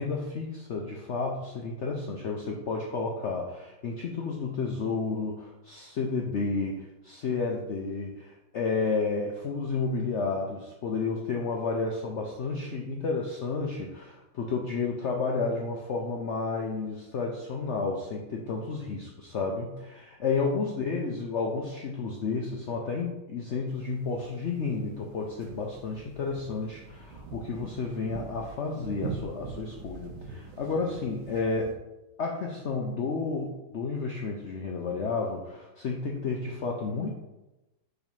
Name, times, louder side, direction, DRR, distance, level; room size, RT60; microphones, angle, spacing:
voice 1, 0.0-19.0 19.3-31.7 32.2-37.1, left 4 dB, 70° left, 0 dB, 0.6 m, -31 dB
sound 1, 23.7-31.8, right 5 dB, 75° right, 1.4 m, -43 dB
5.0 x 3.9 x 5.3 m, 1.0 s
omnidirectional pair, 2.0 m